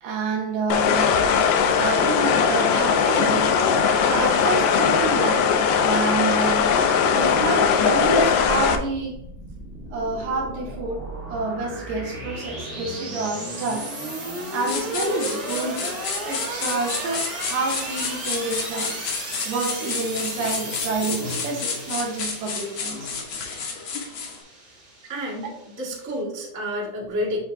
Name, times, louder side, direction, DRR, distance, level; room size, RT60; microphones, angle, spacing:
voice 1, 0.0-1.1 1.8-3.5 3.9-6.8 7.2-9.2 9.9-13.9 14.5-19.0 19.4-23.1, right 3 dB, 75° right, 2.5 m, -28 dB
sound 1, 0.7-8.8, left 6 dB, 80° left, 2.2 m, -19 dB
sound 2, 8.0-26.1, right 1 dB, 60° right, 0.7 m, -35 dB
sound 3, 14.7-24.4, left 5 dB, 65° left, 1.7 m, -31 dB
voice 2, 25.1-27.4, equal, 15° right, 0.6 m, -30 dB
10.0 x 3.5 x 2.7 m
omnidirectional pair, 4.0 m